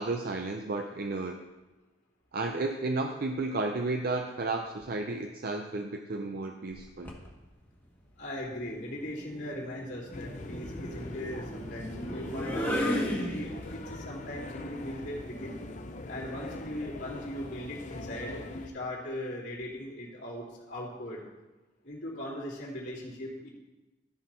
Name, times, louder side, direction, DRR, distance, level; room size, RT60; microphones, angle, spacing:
voice 1, 0.0-1.4 2.3-7.1, right 3 dB, 55° right, 4 dB, 0.6 m, -32 dB
sound 1, 6.7-7.3 8.6-13.9, equal, 10° left, 1.5 m, -35 dB
voice 2, 8.2-15.6 16.1-21.3 21.8-23.5, left 1 dB, 65° left, -12 dB, 2.8 m, -39 dB
sound 2, 10.1-18.7, left 2 dB, 45° left, 0.7 m, -42 dB
13.0 x 6.2 x 4.4 m, 1.1 s
head